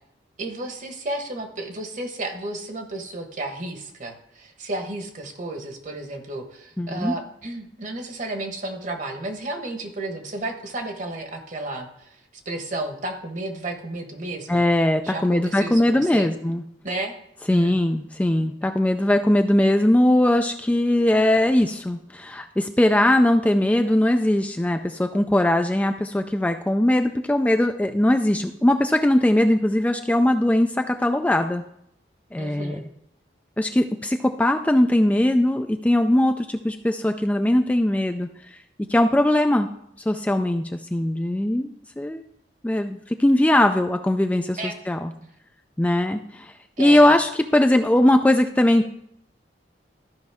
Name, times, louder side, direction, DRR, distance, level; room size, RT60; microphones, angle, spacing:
voice 1, 0.4-14.6 15.0-16.3 16.8-17.1 17.5-17.8 32.4-32.8 44.6-44.8 45.2-45.3 46.8-47.2, right 2 dB, 45° right, 5 dB, 1.2 m, -32 dB
voice 2, 6.8-7.1 14.5-16.6 17.5-31.6 32.3-32.8 33.6-38.3 38.8-39.7 40.1-40.6 40.9-41.7 42.0-42.2 42.6-44.6 44.9-45.1 45.8-46.5 46.8-48.9, left 1 dB, 10° left, 6 dB, 0.3 m, -20 dB
13.5 x 5.3 x 3.5 m, 0.72 s
head